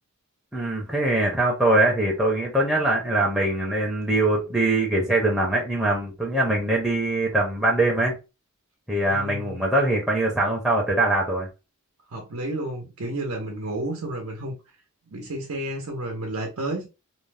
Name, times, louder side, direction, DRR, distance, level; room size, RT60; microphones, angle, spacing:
voice 1, 0.5-8.1 8.9-11.5, right 2 dB, 5° right, 0.6 m, -22 dB
voice 2, 9.1-9.6 12.1-14.6 15.1-16.9, right 1 dB, 85° right, 0.7 m, -31 dB
2.6 x 2.0 x 3.2 m
head